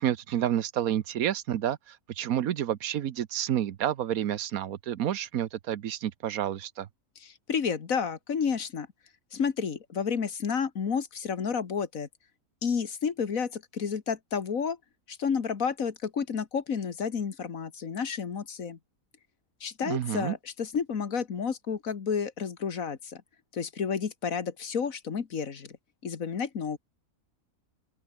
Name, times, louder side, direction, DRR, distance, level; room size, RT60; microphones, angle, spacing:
voice 1, 0.0-6.9 19.9-20.4, right 10 dB, 80° right, 1.3 m, -29 dB
voice 2, 7.2-8.9 9.3-12.1 12.6-14.8 15.1-18.8 19.6-23.2 23.5-25.8 26.0-26.8, left 6 dB, 70° left, 2.0 m, -31 dB
open air
omnidirectional pair, 1.5 m